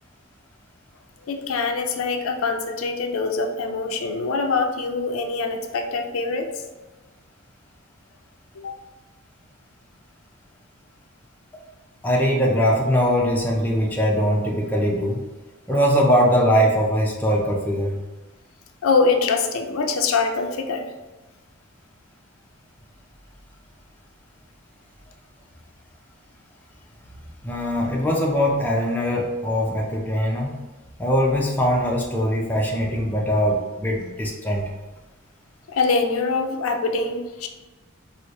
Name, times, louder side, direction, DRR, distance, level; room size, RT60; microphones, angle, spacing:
voice 1, 1.3-6.6 8.5-8.8 18.8-20.9 35.7-37.5, left 4 dB, 90° left, 5 dB, 0.4 m, -24 dB
voice 2, 12.0-15.2 15.7-18.0 27.4-30.7 31.0-34.7, equal, 10° left, -2 dB, 0.4 m, -21 dB
4.5 x 2.0 x 2.6 m, 1.2 s
head